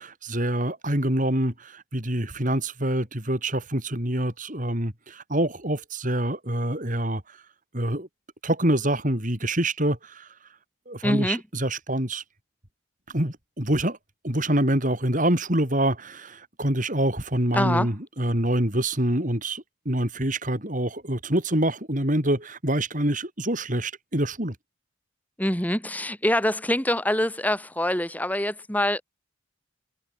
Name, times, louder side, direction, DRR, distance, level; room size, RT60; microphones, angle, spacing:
voice 1, 0.0-7.4 7.7-8.1 8.4-10.3 10.9-12.2 13.1-14.0 14.2-24.6, right 1 dB, 40° right, 4.4 m, -26 dB
voice 2, 11.0-11.4 17.5-17.9 25.4-29.0, left 1 dB, 10° left, 2.6 m, -25 dB
head